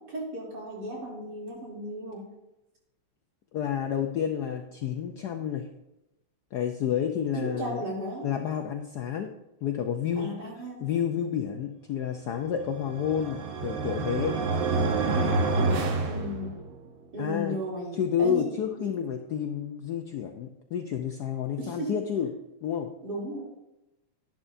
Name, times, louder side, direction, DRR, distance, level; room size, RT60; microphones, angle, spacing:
voice 1, 0.0-2.3 7.3-8.3 10.2-10.8 16.0-16.6 17.1-18.5 18.8-19.0 21.6-22.0 23.0-23.4, equal, 50° right, -4 dB, 3.6 m, -35 dB
voice 2, 3.5-5.7 6.5-7.8 8.2-9.3 9.6-10.3 10.8-14.4 17.2-17.6 18.0-22.3 22.6-22.9, left 8 dB, 70° left, 5 dB, 1.0 m, -30 dB
sound 1, 12.6-16.9, right 3 dB, 70° right, 1.8 m, -28 dB
11.0 x 11.0 x 2.6 m, 0.92 s
omnidirectional pair, 2.3 m